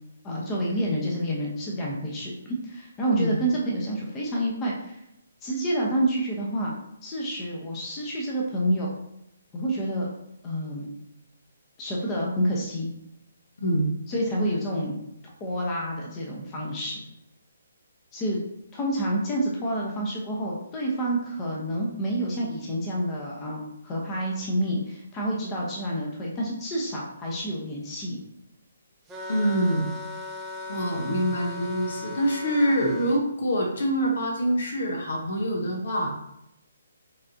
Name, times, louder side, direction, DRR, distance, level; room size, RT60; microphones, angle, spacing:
voice 1, 0.2-2.3 2.6-5.0 5.4-6.7 7.0-8.9 9.5-10.1 10.4-10.9 11.8-12.9 14.1-15.0 15.4-17.0 18.1-18.4 18.7-28.2, right 1 dB, 20° left, -3 dB, 0.9 m, -28 dB
sound 1, 29.1-33.2, left 1 dB, 10° right, 0.6 m, -37 dB
voice 2, 29.3-29.9 30.7-36.1, equal, 55° left, 1 dB, 1.0 m, -25 dB
5.3 x 3.4 x 2.7 m, 0.83 s
figure-of-eight pair, 135°, 0 cm